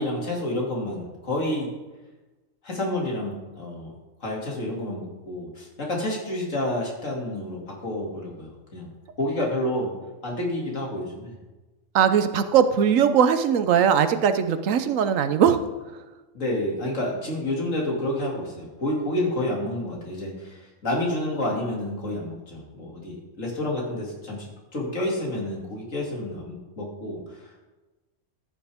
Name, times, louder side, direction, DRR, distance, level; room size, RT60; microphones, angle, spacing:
voice 1, 0.0-1.7 2.6-3.9 4.2-8.9 9.2-9.9 10.2-11.3 16.3-24.5 24.7-27.5, left 1 dB, 80° left, -2 dB, 2.9 m, -29 dB
voice 2, 11.9-15.6, right 8 dB, 85° right, 10 dB, 1.1 m, -20 dB
14.0 x 9.4 x 3.5 m, 1.1 s
omnidirectional pair, 1.3 m